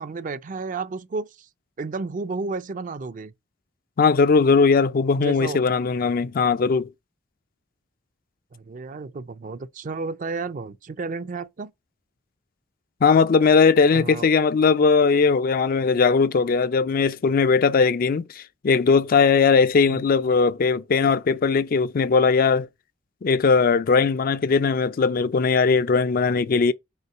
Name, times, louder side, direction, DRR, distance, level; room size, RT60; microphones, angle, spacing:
voice 1, 0.0-1.5 1.8-3.3 5.2-5.6 8.5-11.7 13.9-14.3 19.9-20.0, right 4 dB, 45° right, 0.4 m, -32 dB
voice 2, 4.0-6.9 13.0-22.7 23.2-26.7, left 5 dB, 50° left, 0.4 m, -19 dB
5.6 x 3.9 x 5.9 m
head